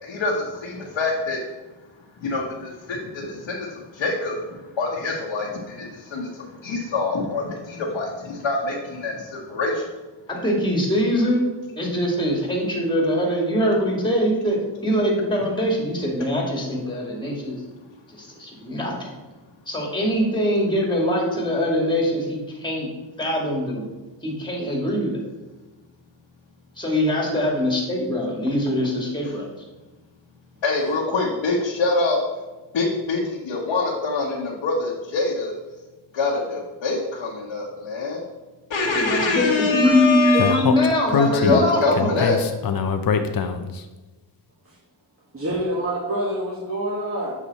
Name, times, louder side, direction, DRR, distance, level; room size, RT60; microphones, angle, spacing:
voice 1, 0.0-1.4 2.2-9.8 30.6-32.2 32.7-35.5 36.1-38.2 38.7-40.6 41.1-42.4, left 3 dB, 70° left, -5 dB, 1.4 m, -25 dB
voice 2, 10.3-11.4 11.8-17.5 18.1-19.1 19.7-22.9 23.2-23.9 24.2-25.2 26.8-29.5 38.9-39.3 39.7-42.2, equal, 10° left, -1 dB, 2.2 m, -23 dB
Speech, 40.4-43.8, left 6 dB, 45° left, 0.7 m, -23 dB
voice 3, 45.3-47.3, right 1 dB, 30° right, -6 dB, 1.7 m, -26 dB
7.2 x 4.9 x 4.1 m, 1.2 s
cardioid pair, 95°, 48 cm